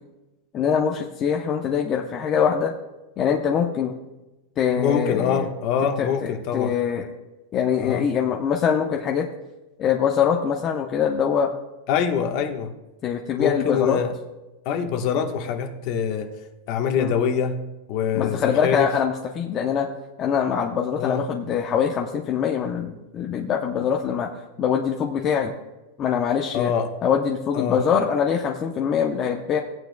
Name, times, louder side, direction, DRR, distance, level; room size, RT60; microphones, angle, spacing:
voice 1, 0.5-2.7 3.2-3.9 4.6-5.5 6.0-7.1 7.5-9.3 9.8-11.5 13.0-14.0 17.0-17.1 18.1-19.9 20.2-24.3 24.6-25.5 26.0-26.7 27.0-29.6, left 7 dB, 30° left, 1 dB, 0.7 m, -23 dB
voice 2, 4.8-6.7 7.8-8.1 11.9-12.7 13.4-14.1 14.6-16.3 16.7-17.6 17.9-18.9 21.0-21.2 26.5-26.9 27.5-27.8, left 7 dB, 45° left, 5 dB, 1.2 m, -24 dB
17.0 x 9.3 x 2.2 m, 1.1 s
supercardioid pair, 150°, 0 cm